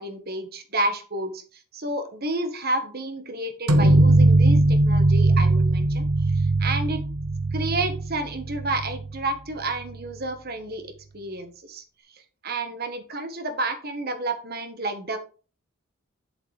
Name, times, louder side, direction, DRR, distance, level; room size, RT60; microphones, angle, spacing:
voice 1, 0.0-1.4 1.7-7.0 7.5-11.8 12.1-15.2, right 2 dB, 45° right, 8 dB, 1.3 m, -30 dB
sound 1, 3.7-9.2, right 2 dB, 85° right, 1.1 m, -20 dB
8.0 x 7.7 x 3.3 m, 0.37 s
head